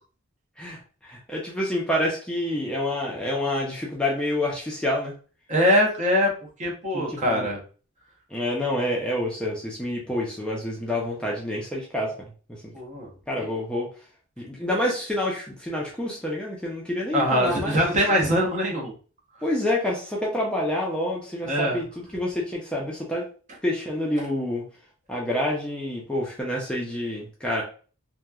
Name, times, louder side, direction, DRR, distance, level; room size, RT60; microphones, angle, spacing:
voice 1, 0.6-5.1 6.9-7.5 8.3-12.3 12.6-12.7 13.3-13.9 14.4-17.8 19.4-23.2 23.6-24.6 25.1-27.6, left 1 dB, 5° left, -3 dB, 0.5 m, -28 dB
voice 2, 5.5-6.3 6.6-7.6 12.7-13.1 17.1-18.9 21.5-21.8 24.2-24.3, equal, 35° right, -1 dB, 0.7 m, -22 dB
2.9 x 2.2 x 2.3 m, 0.38 s
head